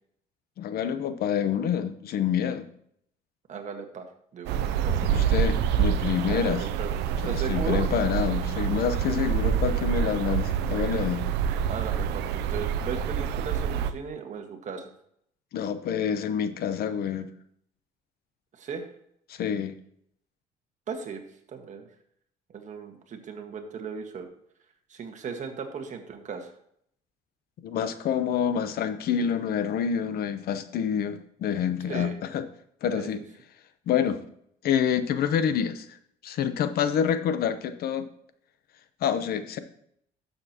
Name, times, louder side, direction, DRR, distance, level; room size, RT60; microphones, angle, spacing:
voice 1, 0.6-2.7 5.0-6.6 7.2-11.2 15.5-17.3 19.3-19.7 27.6-32.4 32.8-33.2 33.9-34.2 34.6-35.9 36.2-38.1 39.0-39.6, left 8 dB, 65° left, 11 dB, 0.8 m, -27 dB
voice 2, 3.5-4.1 4.3-5.2 6.3-7.8 11.7-14.9 18.6-18.8 20.9-21.2 21.5-21.9 22.5-24.3 24.9-26.5 31.9-32.2 32.9-33.2, right 6 dB, 45° right, 5 dB, 1.5 m, -36 dB
sound 1, 4.5-13.9, right 8 dB, 90° right, 0.6 m, -27 dB
12.0 x 6.9 x 2.9 m, 0.70 s
cardioid pair, 110°, 17 cm